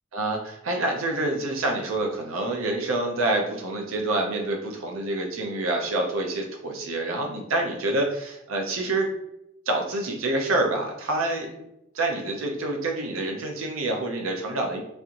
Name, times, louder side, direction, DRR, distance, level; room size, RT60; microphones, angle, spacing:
voice 1, 0.1-9.1 9.7-11.6 11.9-14.8, right 2 dB, 90° right, 2 dB, 0.6 m, -27 dB
4.2 x 2.5 x 2.8 m, 0.83 s
head